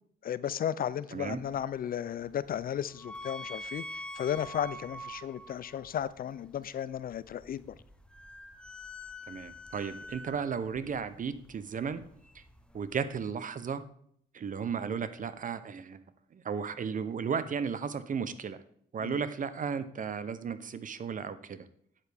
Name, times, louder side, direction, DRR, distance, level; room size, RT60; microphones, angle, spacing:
voice 1, 0.2-7.8 19.0-19.2, left 9 dB, 50° left, 0.4 m, -34 dB
sound 1, 1.1-13.3, left 1 dB, 5° left, 0.7 m, -47 dB
voice 2, 9.3-12.0 12.3-12.4 12.7-13.8 14.3-16.0 16.3-18.6 18.9-21.7, right 6 dB, 40° right, 0.7 m, -34 dB
9.1 x 8.0 x 3.4 m
cardioid pair, 90°, 20 cm